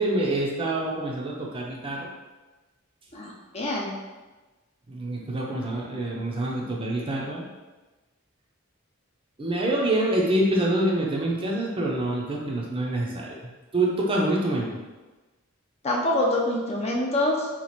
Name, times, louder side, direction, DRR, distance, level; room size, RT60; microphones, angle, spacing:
voice 1, 0.0-2.1 4.9-7.4 9.4-13.4 13.7-14.7, right 1 dB, 25° right, -2 dB, 0.5 m, -26 dB
voice 2, 3.1-3.9 15.8-17.5, left 1 dB, 30° left, -2 dB, 0.5 m, -25 dB
2.9 x 2.4 x 4.1 m, 1.2 s
head